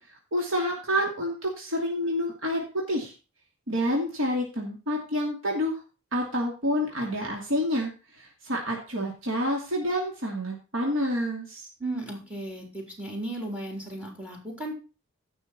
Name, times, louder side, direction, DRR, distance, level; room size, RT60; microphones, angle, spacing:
voice 1, 0.3-3.1 3.7-5.8 6.1-7.9 8.2-11.7, equal, 65° right, -1 dB, 2.7 m, -28 dB
voice 2, 11.8-14.7, right 1 dB, 5° right, 2 dB, 3.5 m, -35 dB
16.0 x 6.2 x 4.2 m, 0.33 s
head